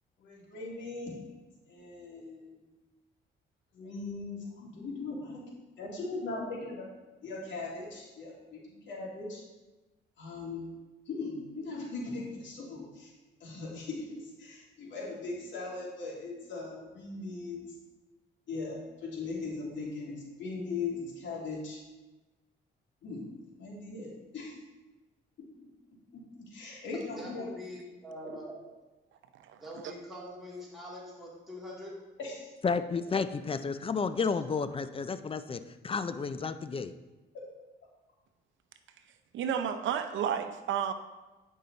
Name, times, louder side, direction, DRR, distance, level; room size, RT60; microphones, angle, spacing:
voice 1, 0.2-1.3 1.7-2.5 3.7-5.2 5.8-6.8 7.2-8.6 8.8-9.4 10.2-10.6 11.1-13.1 13.4-17.7 18.5-21.8 23.0-23.2 23.6-24.5 25.4-25.5 26.1-26.2 26.5-27.5 32.2-32.5, left 3 dB, 70° left, -4 dB, 2.7 m, -39 dB
voice 2, 27.2-28.7 29.6-31.9, equal, ahead, -6 dB, 2.5 m, -44 dB
voice 3, 32.6-36.9, left 5 dB, 30° left, 12 dB, 0.5 m, -32 dB
voice 4, 39.3-40.9, right 8 dB, 75° right, 9 dB, 0.7 m, -31 dB
9.2 x 5.5 x 4.0 m, 1.2 s
cardioid pair, 90°, 20 cm